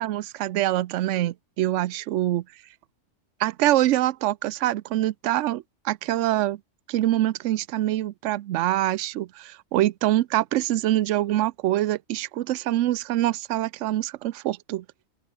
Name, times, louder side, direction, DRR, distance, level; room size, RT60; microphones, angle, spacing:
voice 1, 0.0-2.4 3.4-6.6 6.9-14.8, right 14 dB, 75° right, 0.9 m, -25 dB
open air
omnidirectional pair, 1.3 m